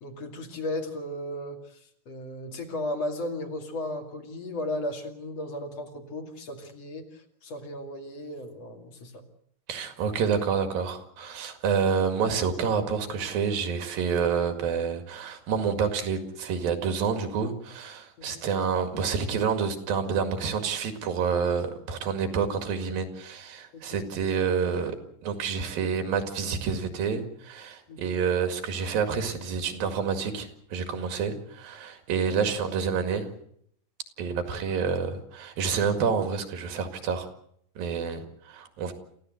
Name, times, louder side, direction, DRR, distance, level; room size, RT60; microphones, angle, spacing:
voice 1, 0.0-1.8 2.1-9.2 18.2-18.5 23.7-24.0 27.9-28.2 34.2-34.6, left 1 dB, 50° left, 3 dB, 3.4 m, -35 dB
voice 2, 9.7-25.0 25.2-33.3 34.2-37.3 37.8-38.9, right 6 dB, 90° right, 7 dB, 4.0 m, -28 dB
27.5 x 15.5 x 7.9 m, 0.69 s
omnidirectional pair, 4.0 m